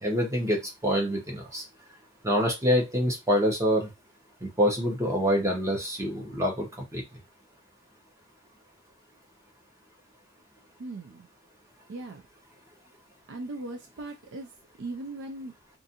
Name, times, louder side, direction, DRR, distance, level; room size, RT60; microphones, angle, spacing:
voice 1, 0.0-1.6 2.2-3.9 4.4-6.7 6.9-7.0, equal, 15° right, 1 dB, 0.9 m, -26 dB
voice 2, 10.8-11.3 11.9-12.2 13.3-14.5 14.8-15.5, right 2 dB, 60° right, 4 dB, 0.4 m, -38 dB
2.5 x 2.4 x 2.7 m, 0.21 s
head